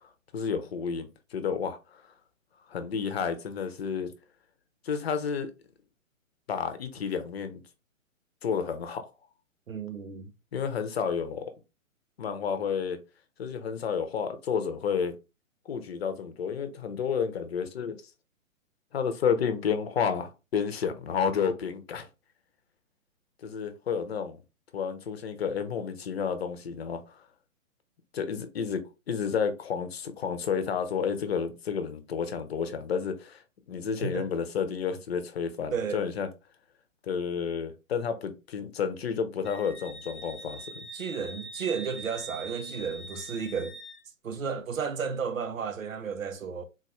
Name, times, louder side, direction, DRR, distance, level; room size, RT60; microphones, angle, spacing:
voice 1, 0.3-2.0 2.7-4.1 4.8-5.5 6.5-7.6 8.4-9.0 10.5-11.5 12.2-13.0 13.4-15.1 15.7-18.0 18.9-22.1 23.4-24.4 24.7-27.2 28.1-33.4 33.7-36.3 37.0-40.8, left 6 dB, 50° left, 0.8 m, -31 dB
voice 2, 9.7-10.3 34.0-34.3 35.7-36.0 40.9-43.7 44.2-46.6, right 6 dB, 75° right, 0.8 m, -33 dB
Wind instrument woodwind instrument, 39.4-44.0, right 2 dB, ahead, 0.8 m, -43 dB
4.0 x 2.6 x 3.0 m
figure-of-eight pair, 125°, 40 cm